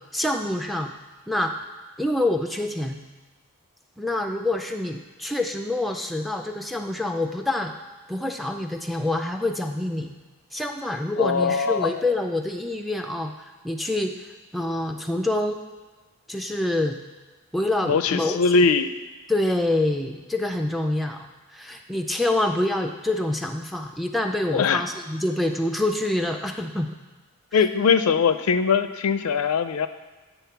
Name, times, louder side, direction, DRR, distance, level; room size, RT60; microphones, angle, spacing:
voice 1, 0.1-0.9 1.3-1.5 2.0-3.0 4.0-7.7 8.1-10.2 10.5-13.3 13.6-14.1 14.5-15.6 16.3-17.0 17.5-18.6 19.3-21.3 21.5-26.9, left 1 dB, ahead, 4 dB, 0.3 m, -26 dB
voice 2, 11.2-12.0 17.9-18.9 24.5-24.8 27.5-29.9, left 5 dB, 75° left, 11 dB, 0.4 m, -21 dB
9.1 x 3.6 x 5.8 m, 1.3 s
head